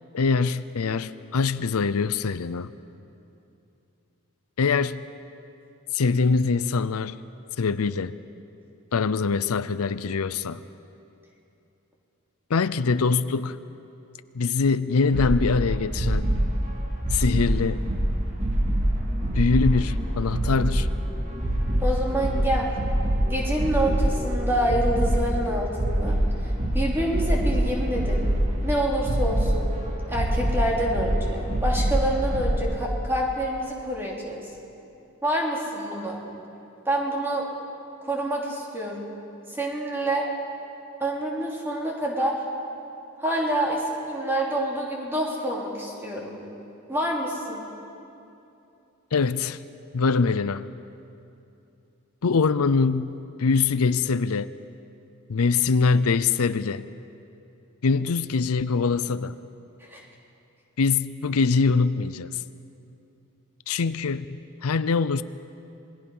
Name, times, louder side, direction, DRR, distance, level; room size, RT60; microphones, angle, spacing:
voice 1, 0.1-2.7 4.6-5.0 5.9-7.2 7.6-8.1 8.9-10.6 12.5-13.6 14.3-16.3 17.1-17.9 19.3-20.9 49.1-49.6 49.9-50.7 52.2-54.5 55.3-56.9 57.8-59.4 60.8-62.4 63.7-65.2, left 4 dB, 85° left, 14 dB, 0.6 m, -23 dB
sound 1, 15.1-32.6, right 1 dB, 30° right, 2.4 m, -25 dB
voice 2, 21.8-22.7 23.3-26.2 26.4-28.3 28.6-29.7 30.1-34.4 35.2-36.2 36.8-37.4 38.0-39.1 39.5-40.3 41.0-42.4 43.2-46.4 46.9-47.6 59.8-60.0, right 1 dB, 10° right, -3 dB, 3.1 m, -27 dB
27.5 x 20.5 x 5.6 m, 2.8 s
head